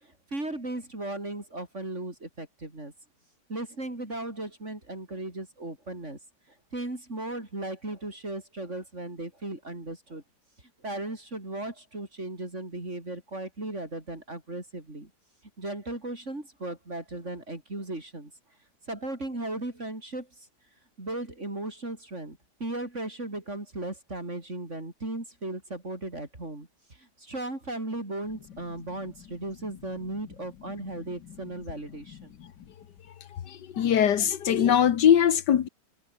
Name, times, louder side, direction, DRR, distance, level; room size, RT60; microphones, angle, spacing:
voice 1, 0.0-2.9 3.5-6.2 6.7-10.2 10.8-15.1 15.6-18.3 18.9-20.5 21.0-32.3, right 2 dB, 45° right, 5.3 m, -36 dB
voice 2, 33.3-35.7, left 9 dB, 85° left, 1.8 m, -22 dB
omnidirectional pair, 1.8 m